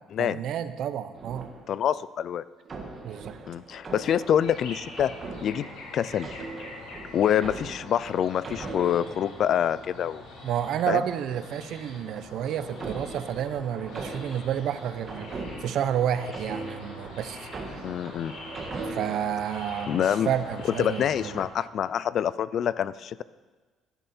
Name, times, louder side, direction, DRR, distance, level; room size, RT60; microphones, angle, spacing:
voice 1, 0.2-1.5 3.0-3.4 10.4-15.3 15.6-17.8 18.9-21.4, right 9 dB, 55° right, 12 dB, 0.7 m, -30 dB
sound 1, 1.2-2.1 2.7-9.9 11.8-19.5 20.1-20.9, right 3 dB, 25° right, 1.7 m, -41 dB
voice 2, 1.7-2.4 3.5-5.1 5.4-5.7 5.9-6.4 7.1-10.2 10.9-11.0 17.8-18.3 19.9-20.3 20.8-23.2, left 9 dB, 40° left, 17 dB, 0.3 m, -26 dB
sound 2, 4.4-21.4, left 2 dB, 90° left, 3.8 m, -44 dB
16.5 x 11.0 x 4.3 m, 1.3 s
cardioid pair, 170°, 0 cm